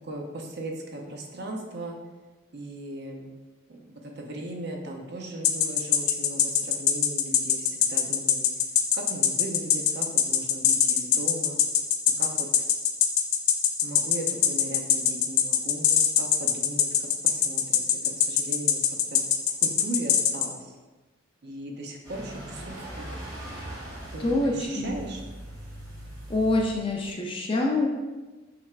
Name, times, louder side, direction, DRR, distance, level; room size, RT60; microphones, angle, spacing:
voice 1, 0.0-2.0 2.5-3.3 3.7-8.5 8.9-11.6 12.2-12.7 13.8-19.2 19.6-20.8 21.4-23.1 24.1-25.2, right 1 dB, 50° right, 1 dB, 0.6 m, -38 dB
sound 1, 5.4-20.5, left 9 dB, 85° left, 0.5 m, -22 dB
sound 2, 22.0-27.1, right 1 dB, 20° right, 0.9 m, -40 dB
voice 2, 24.2-25.0 26.3-27.9, left 2 dB, 25° left, 0 dB, 0.5 m, -25 dB
5.7 x 3.4 x 2.4 m, 1.2 s
head